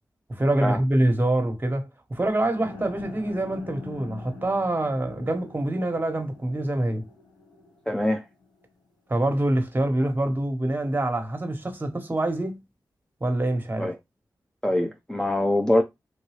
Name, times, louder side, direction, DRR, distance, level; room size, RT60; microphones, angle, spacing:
voice 1, 0.3-7.0 9.1-12.6 13.2-13.9, right 1 dB, 25° right, 1.3 m, -25 dB
sound 1, 2.5-8.7, left 3 dB, 75° left, 1.4 m, -44 dB
voice 2, 7.9-8.2 13.8-14.0 14.6-15.8, left 1 dB, 10° left, 0.6 m, -23 dB
3.4 x 2.6 x 3.2 m
cardioid pair, 45°, 8 cm